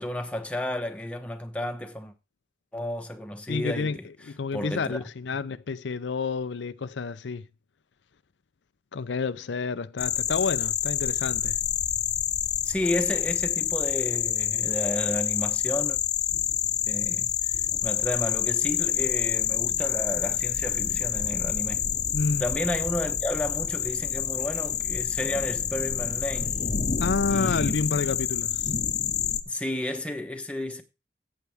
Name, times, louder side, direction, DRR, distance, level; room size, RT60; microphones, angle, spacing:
voice 1, 0.0-2.1 2.7-4.1 4.5-5.0 12.6-16.0 16.9-17.3 17.8-21.9 22.4-26.6 27.3-27.8 29.5-30.8, left 1 dB, 5° left, 1.0 m, -32 dB
voice 2, 3.5-4.0 4.3-7.5 8.9-11.6 22.1-22.4 27.0-28.7, left 4 dB, 80° left, 0.5 m, -29 dB
sound 1, 10.0-29.4, left 9 dB, 40° left, 0.7 m, -27 dB
14.0 x 8.1 x 3.5 m
head